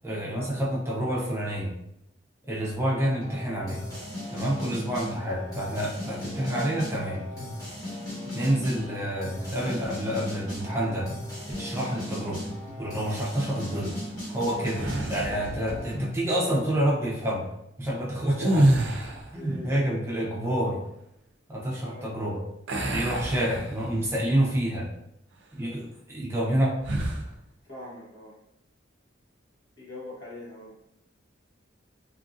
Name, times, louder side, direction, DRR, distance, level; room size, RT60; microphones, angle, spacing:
voice 1, 0.0-1.7 2.5-3.8 4.3-7.2 8.3-11.1 11.6-12.4 12.8-13.9 14.3-17.4 17.8-20.8 21.5-22.5 22.9-24.9 25.6-26.7, right 1 dB, 15° right, -5 dB, 0.6 m, -28 dB
sound 1, 3.2-16.1, left 1 dB, 20° left, 1.1 m, -36 dB
sound 2, 14.7-15.4 18.3-19.4 22.7-24.1 24.6-24.8 26.8-27.3, right 1 dB, 65° right, 0.5 m, -26 dB
voice 2, 19.3-19.8 21.8-22.1 27.7-28.4 29.8-30.7, left 1 dB, 70° left, -6 dB, 1.2 m, -42 dB
2.9 x 2.5 x 2.5 m, 0.80 s
head